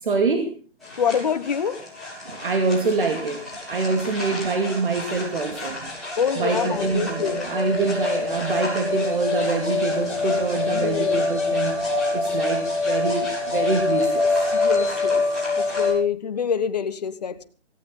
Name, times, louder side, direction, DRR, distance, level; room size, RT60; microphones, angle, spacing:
voice 1, 0.0-0.5 2.3-3.4 3.7-5.9 6.4-11.8 12.1-14.4, right 4 dB, 45° right, 4 dB, 2.5 m, -25 dB
sound 1, 0.8-15.9, left 3 dB, ahead, 7.1 m, -26 dB
voice 2, 1.0-1.8 4.0-4.1 6.2-7.4 10.7-11.2 14.5-15.2 15.8-17.4, left 7 dB, 35° left, 11 dB, 1.2 m, -26 dB
Wind, 7.0-14.9, right 1 dB, 65° right, 5.9 m, -33 dB
17.5 x 17.5 x 3.9 m, 0.37 s
figure-of-eight pair, 155°, 35 cm